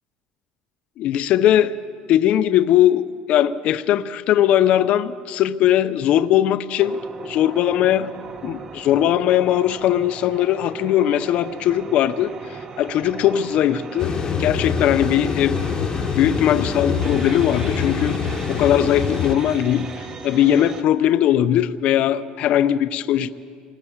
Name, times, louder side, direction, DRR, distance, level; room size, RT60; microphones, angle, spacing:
voice 1, 1.0-1.7 2.1-3.0 3.3-8.1 8.4-12.3 12.8-15.5 16.1-18.2 18.5-19.9 20.2-23.3, left 11 dB, 50° left, 10 dB, 0.7 m, -19 dB
sound 1, 6.8-20.8, right 5 dB, 25° right, 0.9 m, -37 dB
sound 2, 14.0-19.3, left 6 dB, 30° left, 1.1 m, -25 dB
27.5 x 20.0 x 7.3 m, 2.1 s
cardioid pair, 160°, 3 cm